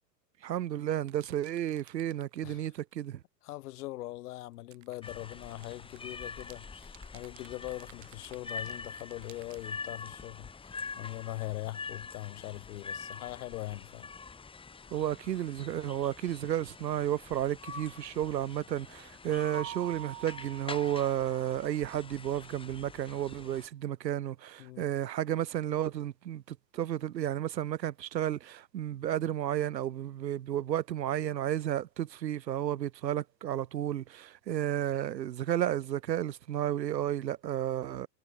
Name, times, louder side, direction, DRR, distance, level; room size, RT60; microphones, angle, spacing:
voice 1, 0.4-3.2 14.9-26.4 26.7-38.1, right 11 dB, 90° right, 1.4 m, -32 dB
sound 1, 1.1-3.1 4.5-9.8, right 15 dB, 35° right, 5.9 m, -58 dB
voice 2, 3.4-14.1 24.6-24.9, left 16 dB, 65° left, 2.9 m, -41 dB
sound 2, 5.0-23.7, left 5 dB, 10° left, 1.7 m, -45 dB
Keyboard (musical), 19.5-22.0, right 17 dB, 65° right, 7.4 m, -46 dB
hypercardioid pair, 125°, 49 cm